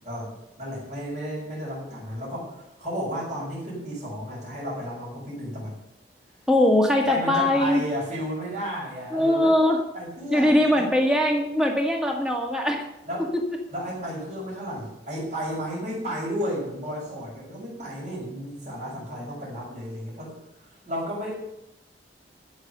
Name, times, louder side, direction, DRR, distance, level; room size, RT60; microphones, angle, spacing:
voice 1, 0.6-5.7 7.0-9.5 9.9-10.9 13.0-13.3 13.7-20.3 20.6-21.3, equal, 45° right, -8 dB, 6.0 m, -33 dB
voice 2, 6.5-7.8 9.1-9.8 10.3-12.9 13.3-13.6, left 1 dB, 5° right, 0 dB, 1.9 m, -21 dB
14.5 x 6.7 x 6.8 m, 0.85 s
head